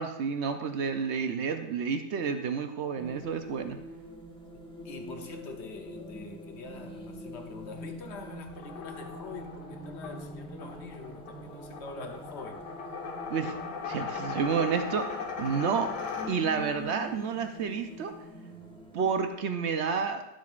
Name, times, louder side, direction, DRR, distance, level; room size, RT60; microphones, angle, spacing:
voice 1, 0.0-3.8 13.3-13.5 13.9-15.9 16.3-18.1 18.9-20.3, right 6 dB, 60° right, 0.7 m, -30 dB
sound 1, 3.0-19.3, equal, 5° left, 0.5 m, -45 dB
voice 2, 4.5-12.7, left 4 dB, 50° left, 1.0 m, -44 dB
sound 2, 8.5-16.8, left 5 dB, 85° left, 1.6 m, -39 dB
11.5 x 7.7 x 2.5 m
omnidirectional pair, 1.8 m